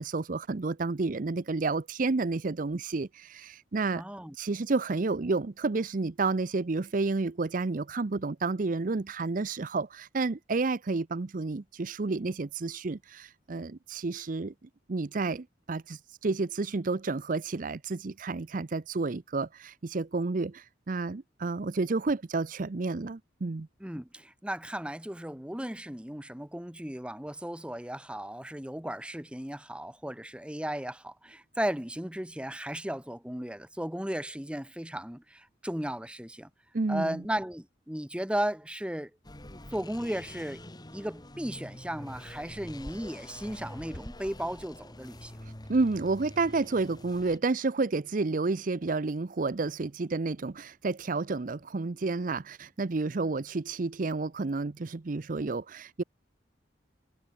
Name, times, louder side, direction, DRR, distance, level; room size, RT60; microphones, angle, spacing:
voice 1, 0.0-4.0 4.3-14.5 14.9-23.7 36.7-37.2 45.4-56.0, right 3 dB, 45° right, 0.6 m, -30 dB
voice 2, 3.9-4.3 23.8-36.5 36.9-39.1 39.7-40.6 40.9-45.3, right 1 dB, 5° right, 1.4 m, -35 dB
sound 1, 39.2-47.4, left 1 dB, 20° left, 2.4 m, -46 dB
head